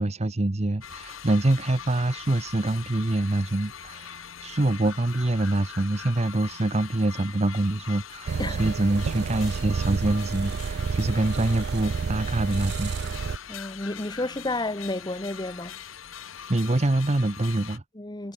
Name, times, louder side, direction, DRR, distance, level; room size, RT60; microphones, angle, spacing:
voice 1, 0.0-13.2 16.5-17.8, right 2 dB, 35° right, 0.9 m, -25 dB
sound 1, 0.8-17.8, left 8 dB, 85° left, 1.4 m, -42 dB
sound 2, 8.3-13.4, right 5 dB, 55° right, 0.4 m, -30 dB
voice 2, 13.5-15.7 18.0-18.3, left 2 dB, 20° left, 1.6 m, -31 dB
head